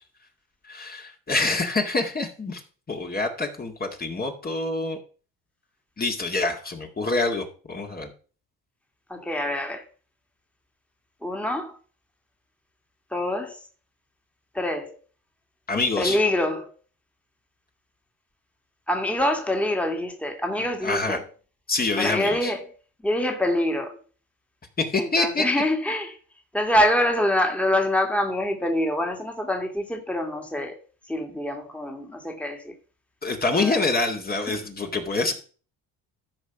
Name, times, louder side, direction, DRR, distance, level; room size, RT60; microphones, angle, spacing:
voice 1, 0.7-2.6 2.9-5.0 6.0-8.1 15.7-16.2 20.8-21.2 21.7-22.5 24.8-25.5 33.2-35.3, left 3 dB, 25° left, 2.0 m, -26 dB
voice 2, 9.1-9.8 11.2-11.7 13.1-13.6 14.6-15.0 16.0-16.7 18.9-21.2 22.0-22.7 23.0-24.0 25.0-26.2 26.5-30.8 31.1-32.7 33.5-33.8 34.5-34.6, left 1 dB, 5° left, 1.9 m, -25 dB
13.0 x 4.8 x 5.8 m
cardioid pair, 100°, 35 cm